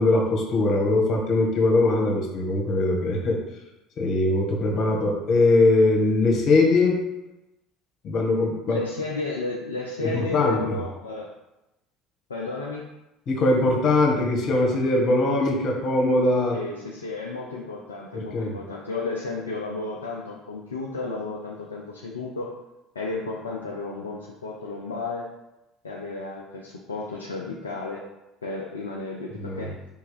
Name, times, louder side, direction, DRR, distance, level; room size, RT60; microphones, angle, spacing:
voice 1, 0.0-3.4 4.0-7.0 8.0-8.8 10.0-10.7 13.3-16.6 18.1-18.5 29.4-29.7, left 2 dB, 50° left, 1 dB, 1.7 m, -21 dB
voice 2, 8.7-11.3 12.3-12.8 16.5-22.5 22.9-25.3 25.8-28.0 28.4-29.7, left 3 dB, 90° left, -2 dB, 0.6 m, -33 dB
5.4 x 3.4 x 5.0 m, 0.97 s
hypercardioid pair, 65°, 0 cm